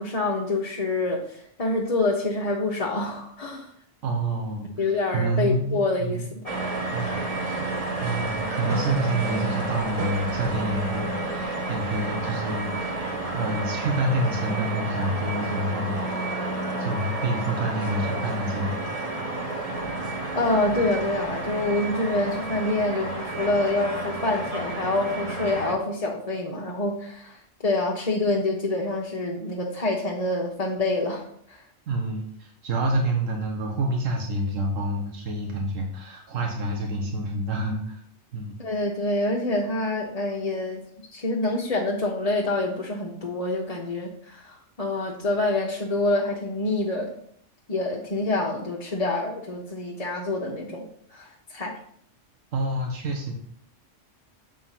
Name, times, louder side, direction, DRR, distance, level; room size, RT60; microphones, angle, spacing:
voice 1, 0.0-3.7 4.8-6.5 20.3-31.6 38.6-40.8 41.1-47.1 47.7-50.8 51.1-51.7, left 2 dB, 35° left, -2 dB, 0.9 m, -26 dB
voice 2, 4.0-6.3 6.9-7.2 8.0-13.1 13.3-16.4 16.8-18.8 31.9-38.0 38.3-38.5 52.5-53.3, right 1 dB, 90° right, 1 dB, 1.5 m, -28 dB
sound 1, 6.5-25.8, right 2 dB, 30° right, 1.3 m, -30 dB
7.5 x 3.7 x 5.7 m, 0.66 s
omnidirectional pair, 1.3 m